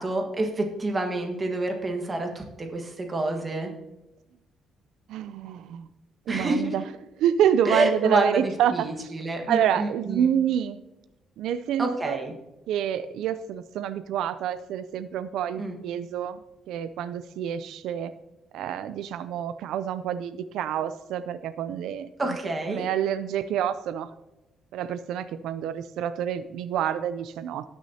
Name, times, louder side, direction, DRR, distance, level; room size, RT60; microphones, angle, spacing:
voice 1, 0.0-3.7 6.3-6.7 7.6-10.3 11.8-12.3 15.6-15.7 22.2-22.8, right 2 dB, 20° right, 3 dB, 1.5 m, -28 dB
voice 2, 5.1-5.9 6.3-9.1 9.5-10.8 11.4-12.2 12.7-16.4 16.7-18.1 18.5-22.4 22.7-24.1 24.7-27.6, right 9 dB, 90° right, 12 dB, 0.4 m, -28 dB
18.5 x 6.2 x 2.8 m, 0.97 s
cardioid pair, 155°, 0 cm